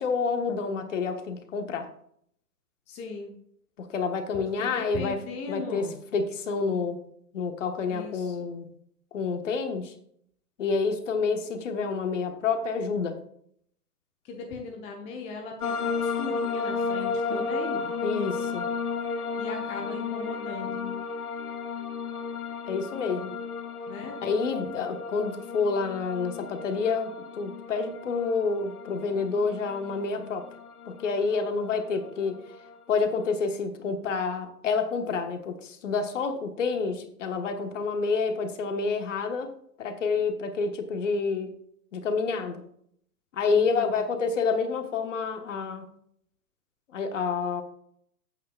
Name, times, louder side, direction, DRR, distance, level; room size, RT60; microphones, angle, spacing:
voice 1, 0.0-1.9 3.8-5.2 5.5-7.0 7.3-8.7 9.1-9.9 10.6-13.2 17.3-17.4 18.0-18.7 22.7-23.4 24.2-30.5 30.9-32.4 32.9-39.5 39.8-41.5 41.9-42.6 43.3-45.9 46.9-47.6, left 4 dB, 50° left, 7 dB, 1.4 m, -28 dB
voice 2, 2.9-3.3 4.3-6.0 7.9-8.5 14.2-17.9 19.4-20.9 23.9-24.2 43.5-43.9, left 4 dB, 15° left, 2 dB, 0.8 m, -38 dB
sound 1, 15.6-33.3, left 5 dB, 65° left, 1.0 m, -34 dB
12.5 x 8.6 x 2.4 m, 0.67 s
figure-of-eight pair, 120°, 48 cm